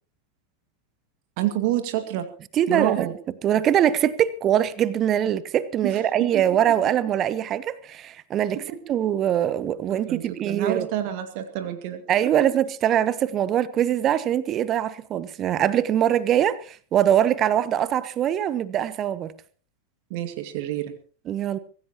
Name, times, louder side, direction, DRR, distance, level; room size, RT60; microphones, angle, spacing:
voice 1, 1.4-2.3 2.7-3.1 5.8-6.4 8.5-9.0 9.9-12.5 20.1-21.0, right 12 dB, 45° right, 8 dB, 2.1 m, -29 dB
voice 2, 2.6-3.1 3.4-8.6 8.9-10.9 12.1-19.3 21.3-21.6, right 10 dB, 30° right, 17 dB, 1.1 m, -23 dB
24.5 x 16.0 x 3.0 m, 0.42 s
figure-of-eight pair, 90°, 0 cm